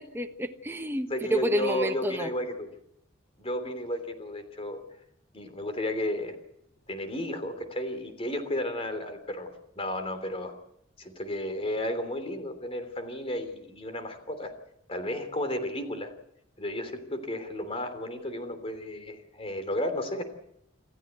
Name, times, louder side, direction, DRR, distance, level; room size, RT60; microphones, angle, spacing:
voice 1, 0.0-2.3, right 1 dB, 10° right, 5 dB, 1.2 m, -30 dB
voice 2, 1.1-2.7 3.4-4.8 5.3-6.4 6.9-10.5 11.0-14.6 14.9-16.1 16.6-20.2, left 1 dB, 30° left, 8 dB, 3.2 m, -33 dB
27.5 x 14.5 x 8.2 m, 0.78 s
head